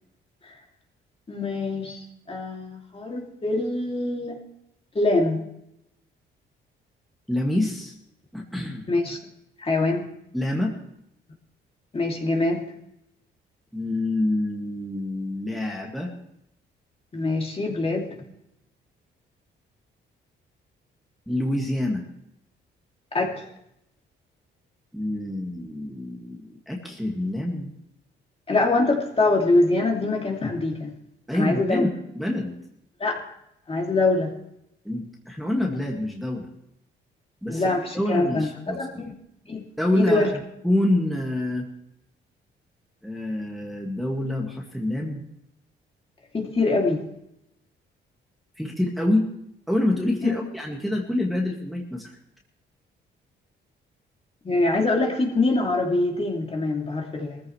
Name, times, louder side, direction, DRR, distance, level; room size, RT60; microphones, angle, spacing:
voice 1, 1.3-4.4 4.9-5.4 8.9-9.2 9.6-10.1 11.9-12.6 17.1-18.2 23.1-23.4 28.5-30.9 31.3-31.9 33.0-33.2 33.7-34.3 37.5-39.2 39.5-39.6 39.9-40.3 46.3-47.0 50.2-50.4 54.4-57.4, left 2 dB, 30° left, 0 dB, 2.8 m, -24 dB
voice 2, 7.3-7.9 8.3-8.8 10.3-10.8 13.7-16.1 21.3-22.0 24.9-27.7 31.3-32.5 34.8-36.5 37.4-37.6 37.9-38.8 39.8-40.3 40.6-41.7 43.0-45.2 48.6-49.3 49.7-52.2, left 1 dB, ahead, -2 dB, 2.1 m, -26 dB
20.0 x 14.5 x 3.3 m, 0.80 s
cardioid pair, 90°, 20 cm